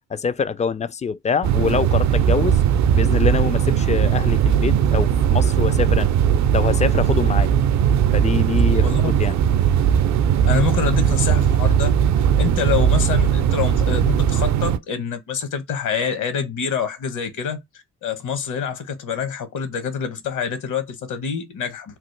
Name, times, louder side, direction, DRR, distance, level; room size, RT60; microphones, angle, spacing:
voice 1, 0.1-2.6 2.9-6.1 6.5-7.5 8.1-9.4, left 6 dB, 20° left, 0.3 m, -24 dB
sound 1, 1.4-14.8, right 9 dB, 55° right, 0.5 m, -18 dB
voice 2, 8.8-9.1 10.4-12.0 12.3-17.6 18.0-22.0, left 7 dB, 60° left, 1.0 m, -26 dB
3.0 x 2.0 x 3.1 m
hypercardioid pair, 45°, 35 cm